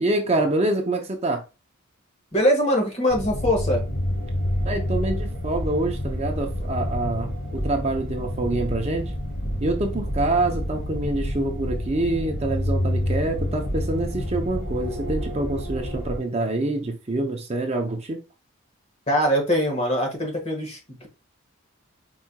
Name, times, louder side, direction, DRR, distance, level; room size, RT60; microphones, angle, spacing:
voice 1, 0.0-1.4 4.6-9.1 9.6-18.2, right 2 dB, 30° right, 0.5 m, -26 dB
voice 2, 2.3-3.8 19.1-21.1, equal, 30° left, 1.4 m, -22 dB
sound 1, 3.1-16.2, equal, 60° left, 2.4 m, -28 dB
4.6 x 4.3 x 2.2 m
head